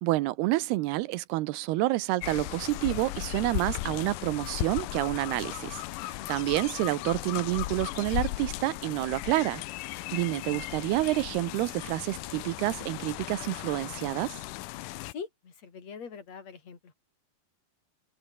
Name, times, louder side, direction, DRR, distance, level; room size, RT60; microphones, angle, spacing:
voice 1, 0.0-14.4, right 18 dB, 90° right, 2.9 m, -29 dB
sound 1, 2.2-15.1, left 18 dB, 85° left, 1.8 m, -36 dB
voice 2, 15.1-16.9, left 6 dB, 45° left, 5.0 m, -43 dB
open air
omnidirectional pair, 4.5 m